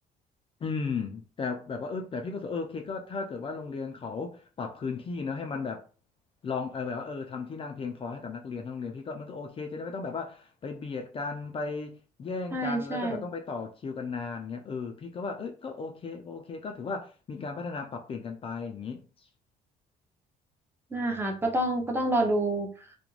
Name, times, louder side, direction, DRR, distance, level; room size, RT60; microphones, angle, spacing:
voice 1, 0.6-5.8 6.4-19.0, left 4 dB, 35° left, 0.4 m, -35 dB
voice 2, 12.5-13.2 20.9-22.7, right 1 dB, 15° right, 0.7 m, -28 dB
2.4 x 2.1 x 3.0 m
cardioid pair, 110°, 17 cm